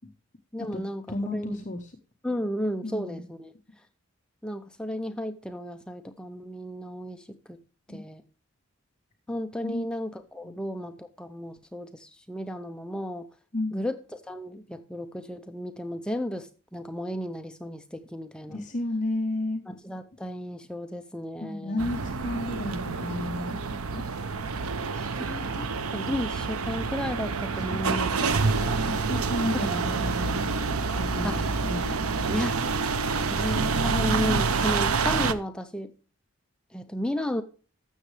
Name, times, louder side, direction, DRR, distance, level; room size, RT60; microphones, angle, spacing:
voice 1, 0.5-1.0 1.3-1.6 2.2-3.5 4.4-7.6 7.9-8.2 9.3-13.3 13.7-14.0 14.2-18.6 19.7-21.9 24.9-28.8 31.2-31.5 32.3-32.6 33.2-35.9 36.7-37.4, equal, 5° left, 7 dB, 0.5 m, -34 dB
voice 2, 1.1-1.9 2.8-3.2 7.9-8.0 9.6-9.9 10.4-10.6 13.5-13.8 18.5-19.6 21.4-24.0 27.5-28.1 28.9-31.9, left 1 dB, 35° left, 3 dB, 0.9 m, -33 dB
sound 1, 21.8-35.3, right 4 dB, 90° right, 0.7 m, -27 dB
12.5 x 7.4 x 3.2 m, 0.37 s
head